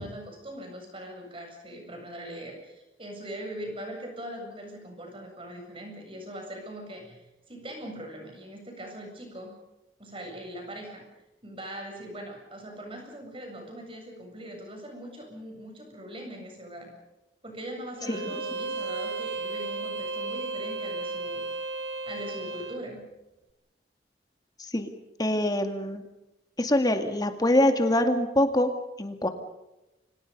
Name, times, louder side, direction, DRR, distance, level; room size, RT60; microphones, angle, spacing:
voice 1, 0.0-9.5 10.0-11.1 11.4-16.9 17.4-21.4 22.1-23.0, right 1 dB, 30° right, 3 dB, 7.6 m, -41 dB
Bowed string instrument, 18.0-22.8, right 3 dB, 80° right, 1.7 m, -34 dB
voice 2, 25.2-26.0 26.6-28.7 29.0-29.3, left 1 dB, 20° left, 6 dB, 2.2 m, -24 dB
29.5 x 25.0 x 5.5 m, 0.98 s
head